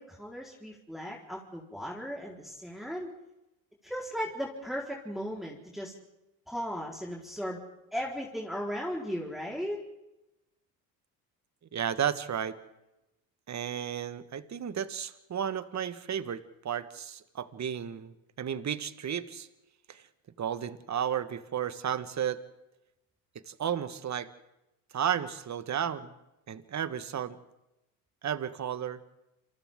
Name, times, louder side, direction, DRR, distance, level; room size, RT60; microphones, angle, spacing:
voice 1, 0.0-3.1 3.8-5.9 6.5-7.6 7.9-9.8, equal, ahead, -3 dB, 4.3 m, -36 dB
voice 2, 11.7-12.6 13.5-19.5 19.9-20.0 20.4-22.4 23.5-24.3 24.9-26.1 26.5-27.4 28.2-29.0, right 9 dB, 40° right, 12 dB, 1.5 m, -33 dB
27.5 x 27.5 x 3.8 m, 0.94 s
hypercardioid pair, 65°, 45 cm